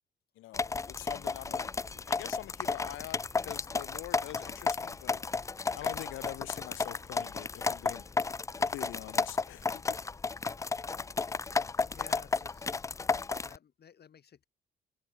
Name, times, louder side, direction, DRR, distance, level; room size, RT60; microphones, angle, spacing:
voice 1, 0.4-1.7 2.1-5.2 5.7-8.0 8.6-10.0, left 16 dB, 90° left, 1.0 m, -44 dB
sound 1, 0.5-13.6, left 4 dB, 15° left, 0.3 m, -33 dB
voice 2, 11.8-12.9 13.4-14.4, left 8 dB, 55° left, 4.2 m, -54 dB
cardioid pair, 90°, 20 cm